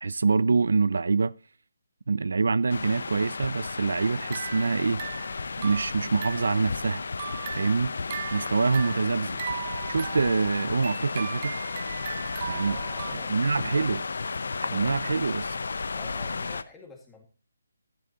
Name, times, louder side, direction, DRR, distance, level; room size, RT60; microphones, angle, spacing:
voice 1, 0.0-1.3 2.1-5.0 5.6-7.0 7.6-7.9 8.3-9.4 9.9-11.5 12.5-12.8 13.3-14.0 14.7-15.4, right 4 dB, 75° right, 0.4 m, -25 dB
sound 1, 2.7-16.6, left 4 dB, 65° left, 0.7 m, -33 dB
sound 2, 4.0-6.6 7.0-13.2, right 7 dB, 30° right, 0.8 m, -38 dB
voice 2, 12.7-14.0 15.9-17.2, left 3 dB, 5° left, 1.9 m, -48 dB
12.0 x 11.0 x 2.9 m
hypercardioid pair, 170°, 0 cm